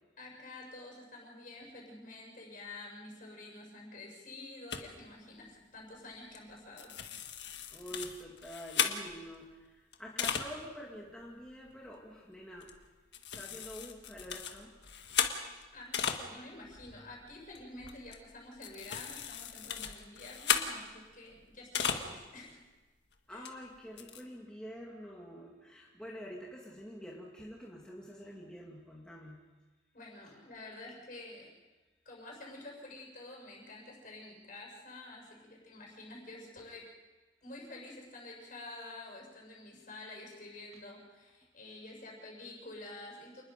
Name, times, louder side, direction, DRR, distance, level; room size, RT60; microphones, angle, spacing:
voice 1, 0.2-6.9 15.7-22.6 23.3-23.5 29.9-31.5 32.0-36.9 37.4-43.4, left 2 dB, 45° left, -1 dB, 6.3 m, -49 dB
sound 1, 4.7-4.8 6.3-6.5 6.8-9.4 9.9-10.5 11.1-11.2 11.5-11.7 12.6-12.9 13.1-16.2 16.6-22.1 22.5-22.6 23.4-23.5 23.7-24.2, left 7 dB, 60° left, 1.7 m, -36 dB
voice 2, 7.7-12.7 13.3-14.7 23.3-29.4, equal, 5° left, -4 dB, 2.2 m, -47 dB
28.0 x 20.5 x 5.2 m, 1.2 s
head